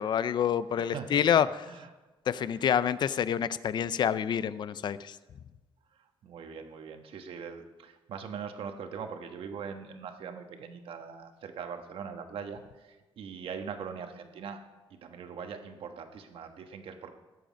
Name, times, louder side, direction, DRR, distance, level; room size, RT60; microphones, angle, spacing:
voice 1, 0.0-1.5 2.3-5.2, left 8 dB, 50° left, 16 dB, 0.5 m, -27 dB
voice 2, 0.8-1.3 1.7-1.9 2.4-2.5 5.9-14.6 14.9-17.1, right 6 dB, 70° right, 6 dB, 1.2 m, -41 dB
19.0 x 7.8 x 5.2 m, 1.2 s
wide cardioid pair, 165°, 10 cm